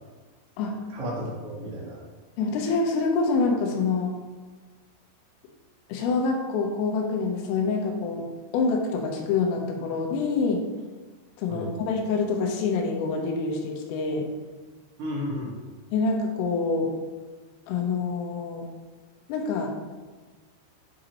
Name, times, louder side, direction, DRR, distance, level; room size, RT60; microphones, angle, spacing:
voice 1, 0.7-2.0 11.5-11.6 15.0-15.5, equal, 65° right, -6 dB, 1.3 m, -33 dB
voice 2, 2.4-4.1 5.9-8.3 8.5-10.6 11.4-14.3 15.9-16.9 17.7-18.7 19.3-19.7, left 4 dB, 90° left, 1 dB, 3.6 m, -26 dB
9.9 x 5.1 x 3.0 m, 1.4 s
omnidirectional pair, 5.7 m